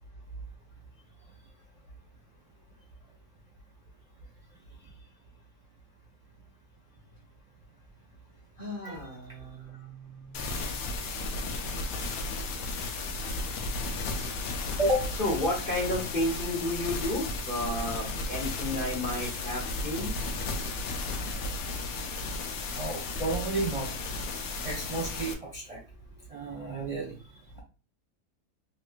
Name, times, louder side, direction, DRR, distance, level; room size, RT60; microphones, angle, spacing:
voice 1, 8.6-10.8 15.2-20.1, left 1 dB, 35° left, -3 dB, 1.2 m, -32 dB
sound 1, 10.3-25.3, left 2 dB, 85° left, 1.3 m, -34 dB
voice 2, 22.8-23.9 24.6-25.8 26.3-27.1, right 1 dB, 25° right, -4 dB, 1.0 m, -31 dB
3.2 x 3.1 x 2.3 m, 0.34 s
omnidirectional pair, 1.8 m